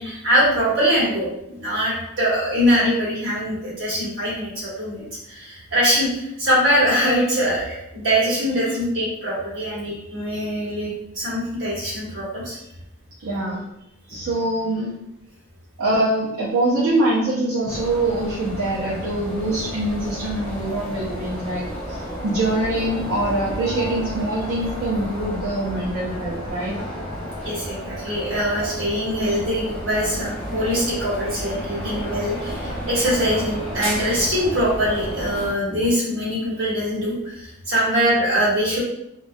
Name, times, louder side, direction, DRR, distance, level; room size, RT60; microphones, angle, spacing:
voice 1, 0.0-12.6 27.4-38.8, equal, 55° right, -8 dB, 1.2 m, -23 dB
voice 2, 13.2-13.6 14.1-15.0 15.8-26.8, right 1 dB, 75° right, -8 dB, 0.5 m, -24 dB
sound 1, 17.7-35.5, equal, 5° left, 0.6 m, -31 dB
2.2 x 2.2 x 2.5 m, 0.84 s
head